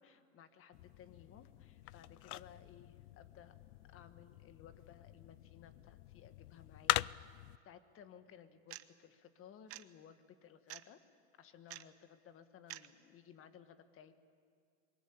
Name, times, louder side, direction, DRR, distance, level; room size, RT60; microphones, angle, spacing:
voice 1, 0.0-3.6 3.9-11.0 11.4-14.1, left 8 dB, 30° left, 10 dB, 1.5 m, -59 dB
sound 1, 0.7-7.6, left 18 dB, 85° left, 0.6 m, -42 dB
sound 2, 8.7-8.8 9.7-9.8 10.7-10.9 11.7-11.8 12.7-12.9, right 17 dB, 35° right, 0.8 m, -47 dB
27.5 x 23.0 x 8.7 m, 2.3 s
supercardioid pair, 145°, 44 cm